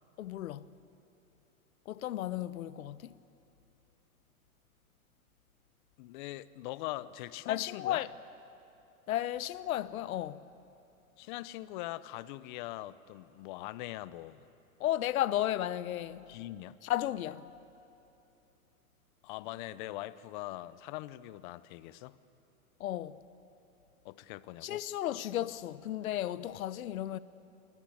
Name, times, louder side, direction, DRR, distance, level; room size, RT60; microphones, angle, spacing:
voice 1, 0.2-0.7 1.9-3.1 7.5-8.1 9.1-10.4 14.8-16.3 16.8-17.4 22.8-23.2 24.6-27.2, left 13 dB, 70° left, 1.1 m, -34 dB
voice 2, 6.0-8.0 11.2-14.5 16.3-16.8 19.2-22.2 24.0-24.8, left 16 dB, 35° left, 0.7 m, -42 dB
29.0 x 23.0 x 8.6 m
hypercardioid pair, 145°, 44 cm